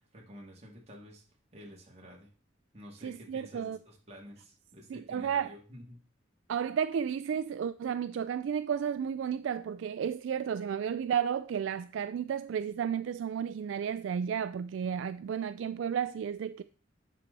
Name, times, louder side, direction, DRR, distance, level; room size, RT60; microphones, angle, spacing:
voice 1, 0.1-1.2 1.5-2.3 2.7-6.0, equal, 35° right, 2.5 m, -50 dB
voice 2, 3.0-3.8 4.9-5.5 6.5-16.6, right 8 dB, 70° right, 0.3 m, -32 dB
11.0 x 4.2 x 4.1 m
head